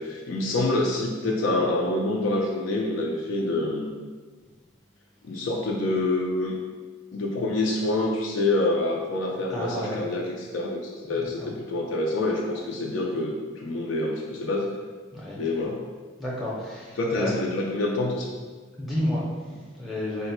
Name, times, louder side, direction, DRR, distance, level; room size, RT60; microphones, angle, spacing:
voice 1, 0.0-4.0 5.2-6.5 7.1-14.7 15.4-15.8 17.0-18.3, left 2 dB, 70° left, -1 dB, 0.4 m, -26 dB
voice 2, 9.5-10.0 11.4-11.5 15.1-15.4 16.2-17.3 18.8-20.3, left 1 dB, ahead, -6 dB, 0.6 m, -31 dB
3.9 x 2.1 x 4.2 m, 1.4 s
head